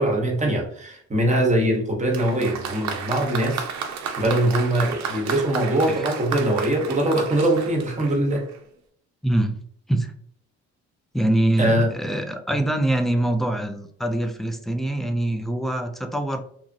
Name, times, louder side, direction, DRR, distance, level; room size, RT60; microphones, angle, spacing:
voice 1, 0.0-3.6 4.2-8.4 11.6-11.9, right 1 dB, 25° right, 0 dB, 0.8 m, -22 dB
Applause, 2.1-8.6, right 6 dB, 65° right, 0.5 m, -32 dB
voice 2, 9.2-9.6 9.9-10.1 11.1-16.4, right 1 dB, ahead, 5 dB, 0.3 m, -24 dB
3.0 x 2.4 x 2.5 m, 0.64 s
cardioid pair, 90°, 30 cm